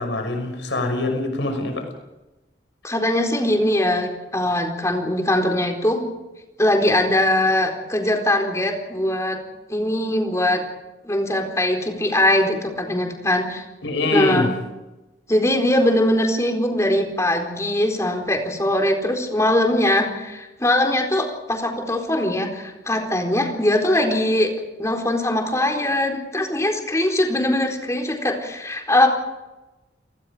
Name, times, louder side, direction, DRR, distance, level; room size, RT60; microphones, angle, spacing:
voice 1, 0.0-1.9 13.8-14.5, left 2 dB, 85° left, 5 dB, 6.0 m, -23 dB
voice 2, 2.8-6.0 6.6-9.4 9.7-10.6 11.0-13.6 14.1-14.5 15.3-24.5 24.8-29.1, left 1 dB, 15° left, 2 dB, 4.2 m, -21 dB
29.5 x 19.5 x 5.1 m, 1.0 s
head